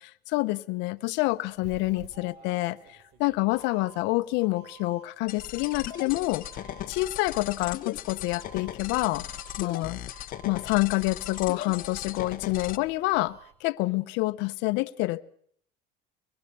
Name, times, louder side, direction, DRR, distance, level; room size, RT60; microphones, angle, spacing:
voice 1, 0.0-6.5 6.9-9.2 9.6-10.0 10.4-15.3, left 21 dB, 85° left, 1.0 m, -27 dB
Doorbell, 0.9-13.7, right 8 dB, 80° right, 5.2 m, -52 dB
sound 1, 5.3-12.8, left 12 dB, 50° left, 1.3 m, -38 dB
25.0 x 20.5 x 6.9 m
cardioid pair, 135°, 18 cm